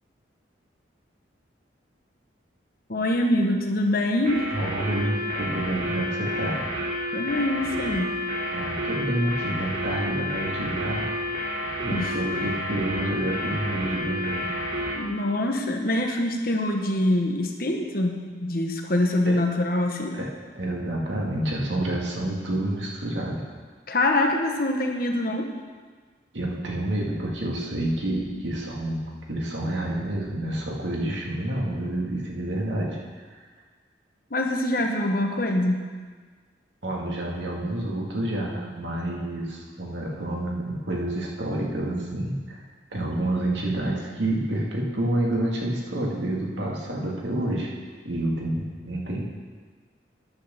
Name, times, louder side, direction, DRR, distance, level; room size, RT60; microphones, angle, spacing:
voice 1, 2.9-4.4 7.1-8.2 11.9-12.2 15.0-20.2 23.9-25.5 34.3-35.8, left 1 dB, 50° left, 2 dB, 1.1 m, -24 dB
sound 1, 4.3-15.0, left 1 dB, 50° right, 3.1 m, -30 dB
voice 2, 4.5-6.7 8.5-11.1 11.8-14.5 19.3-19.4 20.1-23.4 26.3-29.0 29.3-33.5 36.8-42.6 42.9-47.7 48.0-49.2, right 1 dB, 80° right, -2 dB, 2.1 m, -28 dB
10.5 x 6.3 x 6.9 m, 1.5 s
head